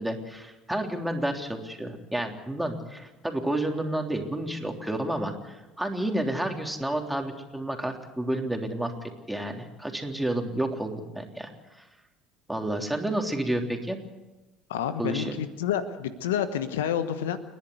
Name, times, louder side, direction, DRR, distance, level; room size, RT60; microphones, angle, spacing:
voice 1, 0.0-8.9 9.3-11.8 12.5-14.0 15.0-15.4, right 1 dB, 5° right, 3 dB, 3.4 m, -30 dB
voice 2, 14.7-17.4, left 9 dB, 80° left, 12 dB, 1.1 m, -29 dB
29.5 x 11.0 x 8.2 m, 1.1 s
hypercardioid pair, 60°, 0 cm